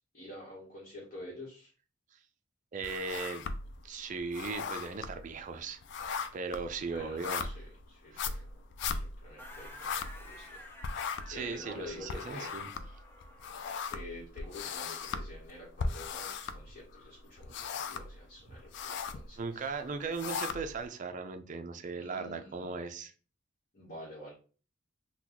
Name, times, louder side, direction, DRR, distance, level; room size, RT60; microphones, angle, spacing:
voice 1, 0.0-1.7 6.9-8.6 8.9-10.7 10.9-12.5 13.9-19.8 21.9-22.8 23.7-24.3, left 1 dB, 40° left, -6 dB, 1.1 m, -48 dB
voice 2, 2.7-3.5 3.8-6.0 6.3-7.5 8.1-8.4 11.3-12.7 19.4-23.1, right 4 dB, 40° right, 8 dB, 0.4 m, -38 dB
sound 1, 2.8-3.8 4.2-10.6 10.8-17.0 17.4-18.2 18.5-19.3 19.8-20.9, left 5 dB, 60° left, 0.3 m, -38 dB
sound 2, 9.4-13.8, left 1 dB, 10° left, 0.6 m, -52 dB
3.9 x 2.2 x 3.0 m, 0.38 s
head